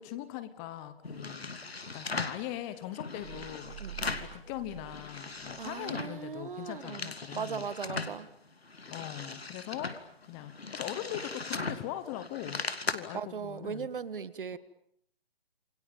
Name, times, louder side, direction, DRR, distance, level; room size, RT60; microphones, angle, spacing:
voice 1, 0.0-1.5 1.9-3.8 4.2-7.7 8.9-10.0 10.3-12.6 12.9-13.9 14.5-14.6, left 13 dB, 15° left, 13 dB, 1.1 m, -40 dB
sound 1, 1.0-2.4 2.9-4.4 4.7-6.2 6.6-8.2 8.6-12.9, left 3 dB, 90° left, 2.9 m, -38 dB
sound 2, 3.2-5.9, right 11 dB, 40° right, 1.9 m, -48 dB
voice 2, 5.6-8.3 13.1-14.6, right 6 dB, 60° right, 15 dB, 1.9 m, -38 dB
28.5 x 28.0 x 7.4 m, 0.70 s
figure-of-eight pair, 150°, 30 cm